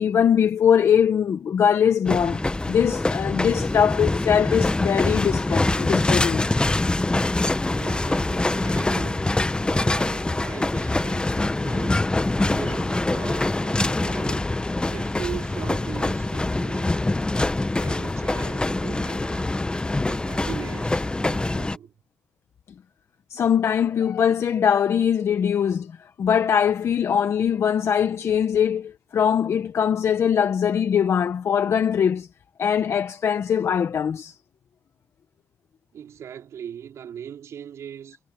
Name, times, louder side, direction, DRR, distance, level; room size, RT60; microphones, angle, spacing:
voice 1, 0.0-6.5 23.3-25.9 26.2-32.3 32.6-34.3, left 8 dB, 70° left, 1.2 m, -21 dB
sound 1, 2.0-21.8, left 2 dB, 20° left, 1.2 m, -24 dB
voice 2, 7.7-9.3 9.6-12.0 12.4-14.5 14.9-17.1 17.8-19.5 20.0-21.9 35.9-38.2, right 9 dB, 80° right, 3.7 m, -39 dB
cardioid pair, 70°, 5 cm